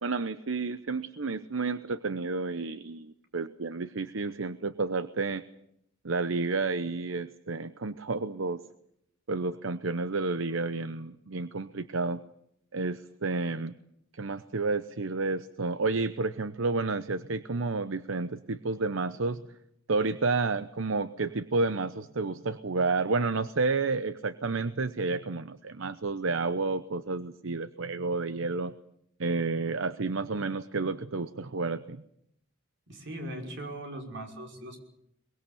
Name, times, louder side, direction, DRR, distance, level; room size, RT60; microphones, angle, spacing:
voice 1, 0.0-5.4 6.0-8.6 9.3-12.2 12.7-13.7 14.1-19.4 19.9-28.7 29.2-32.0, right 3 dB, 90° right, 13 dB, 0.9 m, -30 dB
voice 2, 32.9-34.8, right 1 dB, 65° right, 3 dB, 5.7 m, -39 dB
23.0 x 22.0 x 7.0 m, 0.75 s
head